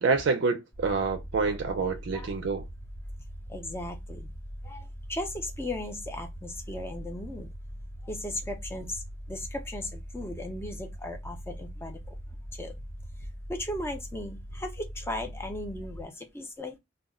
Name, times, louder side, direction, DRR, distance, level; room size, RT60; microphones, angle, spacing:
voice 1, 0.0-2.6, right 4 dB, 65° right, 0.4 m, -27 dB
sound 1, 0.7-16.0, equal, 90° left, 1.1 m, -41 dB
voice 2, 3.5-4.3 4.6-7.5 8.0-9.0 9.3-12.2 12.5-12.7 13.5-16.8, left 1 dB, 10° left, 0.4 m, -37 dB
2.2 x 2.0 x 3.5 m
head